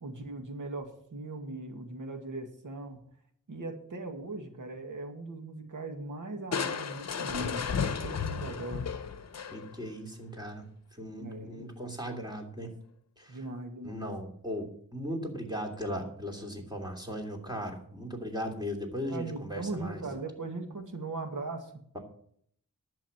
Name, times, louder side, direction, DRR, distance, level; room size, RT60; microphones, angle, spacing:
voice 1, 0.0-3.0 3.5-8.9 11.2-11.7 13.3-14.1 19.0-21.7, right 2 dB, 70° right, 5 dB, 2.1 m, -39 dB
Crushing, 6.5-9.9, left 6 dB, 50° left, 0.9 m, -33 dB
voice 2, 9.5-10.6 10.9-12.7 13.2-13.4 13.8-20.0, equal, 10° right, 2 dB, 3.0 m, -37 dB
11.0 x 7.1 x 7.2 m, 0.63 s
wide cardioid pair, 100°, 33 cm